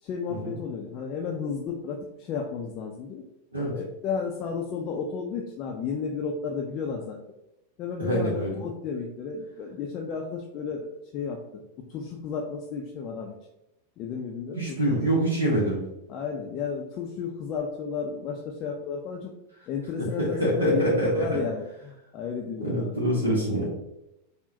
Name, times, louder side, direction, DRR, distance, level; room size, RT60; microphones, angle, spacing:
voice 1, 0.0-3.3 3.6-7.2 7.8-11.4 11.8-13.3 14.0-15.0 16.1-19.3 19.7-23.0, left 6 dB, 35° left, 0 dB, 0.4 m, -33 dB
voice 2, 8.0-8.6 14.6-15.8 20.0-21.4 22.6-23.7, right 1 dB, 75° right, -4 dB, 0.7 m, -25 dB
3.7 x 2.0 x 2.7 m, 0.89 s
figure-of-eight pair, 90°, 0 cm